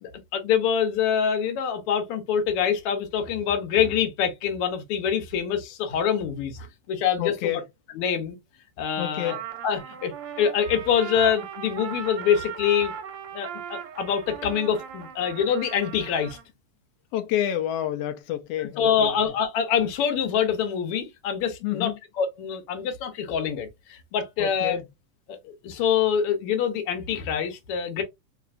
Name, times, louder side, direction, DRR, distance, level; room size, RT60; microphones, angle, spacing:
voice 1, 0.0-7.3 7.9-8.4 8.8-9.3 9.6-10.1 10.4-12.9 13.3-16.4 18.8-24.8 25.3-28.0, left 8 dB, 65° left, 1.5 m, -25 dB
voice 2, 7.2-7.7 9.0-9.4 17.1-19.1 21.6-22.0 24.4-24.8, left 12 dB, 85° left, 1.3 m, -29 dB
Trumpet, 9.2-16.4, right 8 dB, 75° right, 1.8 m, -38 dB
4.5 x 2.9 x 2.4 m
omnidirectional pair, 3.4 m